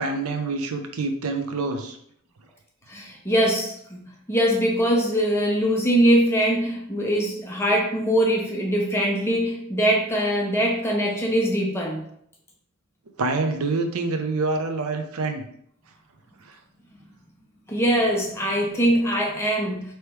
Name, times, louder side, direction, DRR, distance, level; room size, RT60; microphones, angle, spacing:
voice 1, 0.0-2.0 13.2-15.4 16.4-16.6, right 3 dB, 75° right, 6 dB, 0.6 m, -26 dB
voice 2, 2.9-4.0 4.3-12.0 17.7-19.8, equal, 10° left, -2 dB, 0.9 m, -22 dB
3.3 x 3.0 x 4.5 m, 0.68 s
head